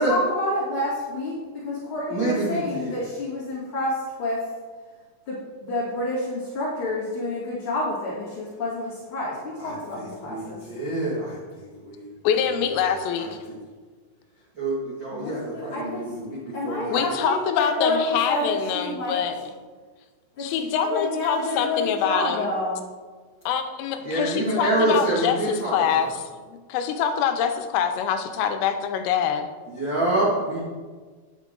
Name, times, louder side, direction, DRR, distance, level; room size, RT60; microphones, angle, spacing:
voice 1, 0.0-4.5 5.2-10.7 15.1-16.1 16.5-19.2 20.3-22.9, left 2 dB, 65° left, -9 dB, 1.3 m, -28 dB
voice 2, 2.1-3.0 9.6-11.4 13.2-13.6 14.5-16.4 16.6-17.1 24.0-26.0 29.7-30.6, right 2 dB, 70° right, -9 dB, 1.1 m, -26 dB
voice 3, 12.2-13.4 16.9-19.4 20.4-22.5 23.5-29.5, left 8 dB, 80° left, 6 dB, 3.2 m, -25 dB
9.5 x 8.0 x 3.8 m, 1.5 s
omnidirectional pair, 6.0 m